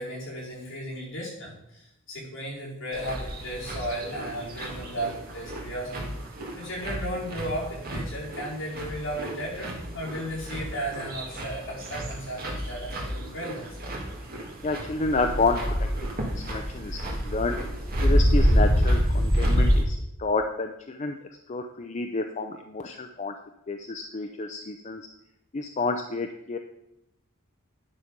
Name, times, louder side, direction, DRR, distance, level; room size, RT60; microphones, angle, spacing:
voice 1, 0.0-6.1 6.5-13.7, equal, 65° left, -6 dB, 4.4 m, -35 dB
sound 1, 2.9-19.8, equal, 45° right, 1.8 m, -27 dB
voice 2, 14.6-15.9 16.3-17.0 17.3-17.6 18.0-21.2 21.5-23.3 23.7-25.0 25.5-26.6, left 3 dB, 35° left, 5 dB, 0.5 m, -29 dB
9.8 x 6.1 x 5.2 m, 0.82 s
head